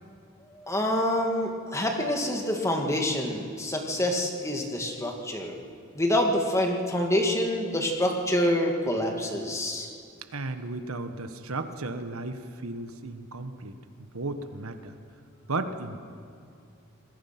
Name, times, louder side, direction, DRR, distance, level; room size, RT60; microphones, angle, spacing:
voice 1, 0.5-5.6 5.9-9.9, left 1 dB, 15° left, 2 dB, 2.1 m, -27 dB
voice 2, 10.3-13.8 14.1-14.9 15.5-16.0, right 2 dB, 80° right, 8 dB, 1.3 m, -34 dB
27.0 x 20.5 x 5.9 m, 2.5 s
head